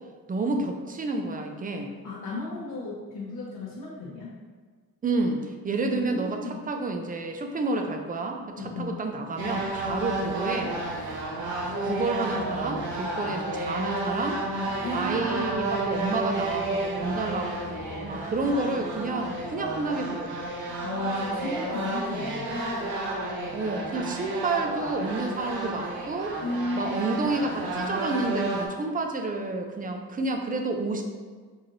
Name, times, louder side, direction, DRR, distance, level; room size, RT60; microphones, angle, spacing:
voice 1, 0.3-1.9 5.0-6.4 6.7-10.7 11.6-14.4 14.9-20.4 23.5-26.4 26.7-31.0, right 3 dB, 25° right, 4 dB, 0.5 m, -30 dB
voice 2, 2.0-4.3 5.9-6.6 8.6-9.0 14.8-15.5 20.8-22.6 26.4-27.1, left 2 dB, 60° left, -6 dB, 0.9 m, -34 dB
sound 1, 9.4-28.7, right 2 dB, 85° right, 0.8 m, -31 dB
4.8 x 2.5 x 2.9 m, 1.5 s
supercardioid pair, 70°, 36 cm